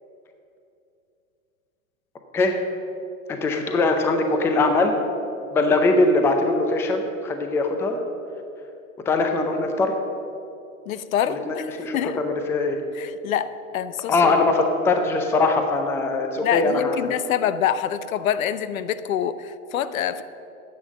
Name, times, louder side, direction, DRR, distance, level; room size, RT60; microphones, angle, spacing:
voice 1, 2.3-2.7 3.3-5.0 5.5-8.0 9.1-9.9 11.3-12.8 14.1-17.1, left 3 dB, 5° left, 5 dB, 0.5 m, -21 dB
voice 2, 10.9-12.2 13.0-14.3 16.4-20.2, left 9 dB, 70° left, 13 dB, 0.7 m, -26 dB
10.0 x 7.1 x 7.4 m, 2.7 s
hypercardioid pair, 130°, 43 cm